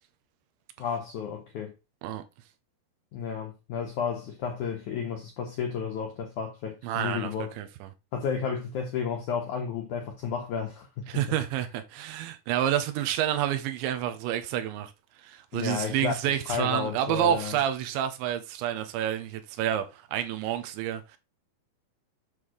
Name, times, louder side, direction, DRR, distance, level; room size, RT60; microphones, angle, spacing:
voice 1, 0.8-1.7 3.1-7.5 8.1-11.0 15.5-17.6, left 6 dB, 75° left, 1.7 m, -32 dB
voice 2, 6.8-7.9 11.1-14.9 15.2-21.2, right 11 dB, 85° right, 3.3 m, -29 dB
8.4 x 3.6 x 6.3 m
omnidirectional pair, 5.2 m